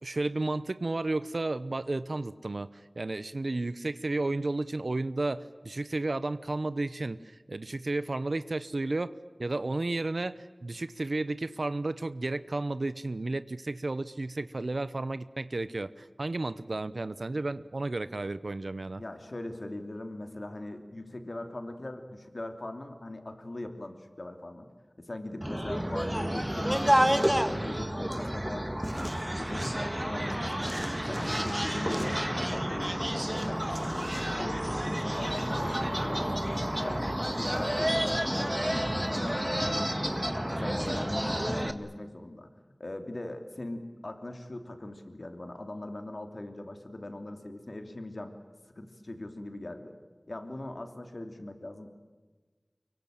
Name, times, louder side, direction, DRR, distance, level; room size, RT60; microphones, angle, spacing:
voice 1, 0.0-9.1 9.4-19.0, right 2 dB, 80° right, 14 dB, 0.8 m, -32 dB
voice 2, 19.0-24.7 25.0-36.4 36.8-42.5 42.8-48.3 48.7-50.0 50.3-51.9, left 1 dB, 65° left, 6 dB, 2.9 m, -41 dB
sound 1, 25.4-41.7, equal, 15° right, 1.7 m, -30 dB
25.0 x 23.0 x 8.9 m, 1.4 s
wide cardioid pair, 45°, 0 cm